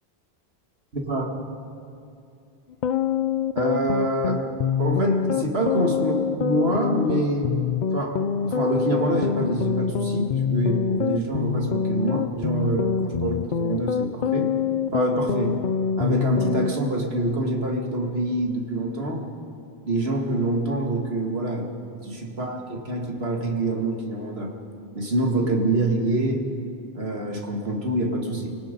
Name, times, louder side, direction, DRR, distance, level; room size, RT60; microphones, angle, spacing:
voice 1, 0.9-1.5 3.6-4.5 4.8-7.5 7.9-14.5 14.9-15.6 16.0-19.2 19.9-21.7 22.0-24.5 24.9-26.5 26.9-28.5, right 1 dB, 75° right, 1 dB, 2.4 m, -26 dB
sound 1, 2.7-16.7, left 7 dB, 55° left, 0.6 m, -25 dB
29.5 x 18.0 x 5.3 m, 2.6 s
omnidirectional pair, 1.1 m